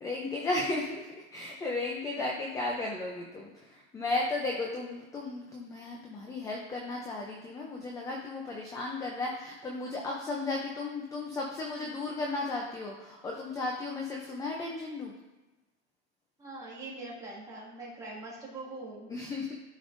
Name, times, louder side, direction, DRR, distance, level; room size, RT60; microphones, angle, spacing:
voice 1, 0.0-15.1 19.1-19.6, left 2 dB, 10° left, -1 dB, 0.4 m, -35 dB
voice 2, 16.4-19.1, right 2 dB, 10° right, -7 dB, 2.2 m, -43 dB
12.0 x 5.3 x 2.5 m, 1.1 s
supercardioid pair, 150°, 37 cm